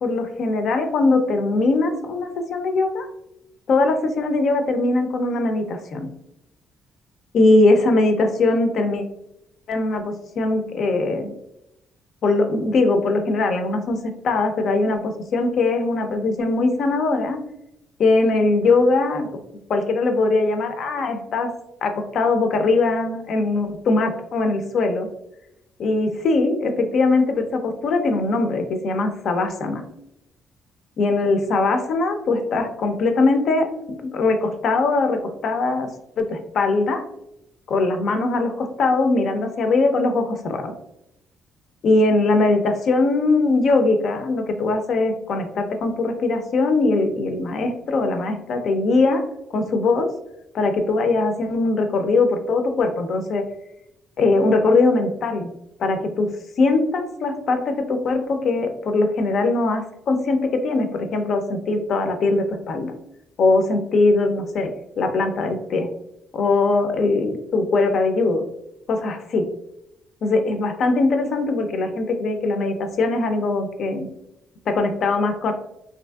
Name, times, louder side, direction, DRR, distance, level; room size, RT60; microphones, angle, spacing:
voice 1, 0.0-3.1 3.7-6.1 7.3-9.0 9.7-11.3 12.2-14.0 14.2-17.4 18.0-19.3 19.7-21.5 21.8-25.1 25.8-29.8 31.0-33.7 34.0-35.9 36.2-37.0 37.7-40.7 41.8-49.2 49.5-50.1 50.5-53.4 54.2-55.5 55.8-56.3 56.6-60.4 60.6-62.9 63.4-64.7 65.0-65.9 66.3-68.4 68.9-69.4 70.2-74.1 74.7-75.5, left 3 dB, 65° left, 6 dB, 0.4 m, -21 dB
2.8 x 2.5 x 2.2 m, 0.82 s
cardioid pair, 90°, 0 cm